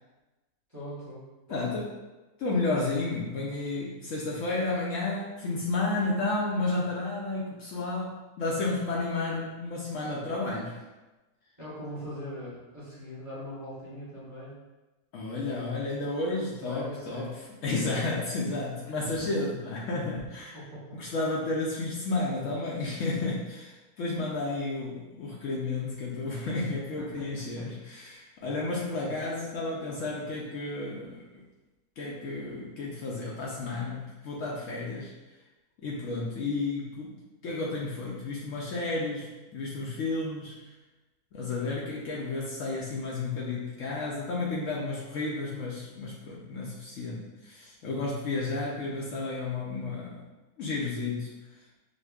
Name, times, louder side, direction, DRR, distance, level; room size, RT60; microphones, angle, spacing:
voice 1, 0.7-1.7 11.6-14.6 16.6-17.3 17.7-18.0 18.8-19.3 20.5-21.0 27.0-27.3 27.6-27.7, equal, 15° right, -9 dB, 0.9 m, -41 dB
voice 2, 1.5-1.9 2.4-10.8 15.1-17.3 17.6-20.5 20.9-31.2 32.0-35.1 35.8-37.2 37.4-40.5 41.3-50.2 50.6-51.3, left 3 dB, 70° left, -4 dB, 0.9 m, -32 dB
5.0 x 2.1 x 2.3 m, 1.1 s
omnidirectional pair, 1.6 m